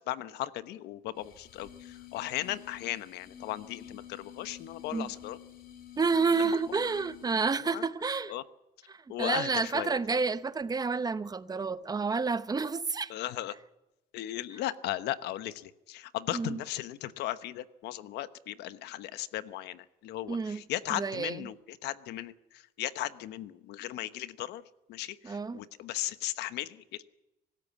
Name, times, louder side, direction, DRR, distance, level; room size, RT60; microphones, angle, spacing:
voice 1, 0.1-5.4 6.4-6.5 7.6-7.8 8.3-8.4 9.1-10.2 13.1-13.5 14.1-24.6 24.9-27.0, left 14 dB, 85° left, 1.1 m, -37 dB
sound 1, 1.2-7.7, left 10 dB, 65° left, 4.4 m, -50 dB
voice 2, 6.0-8.3 8.9-13.1 16.3-16.6 20.3-20.6 20.9-21.5 25.2-25.6, right 4 dB, 20° right, 0.8 m, -30 dB
24.5 x 13.5 x 8.5 m
cardioid pair, 110°, 17 cm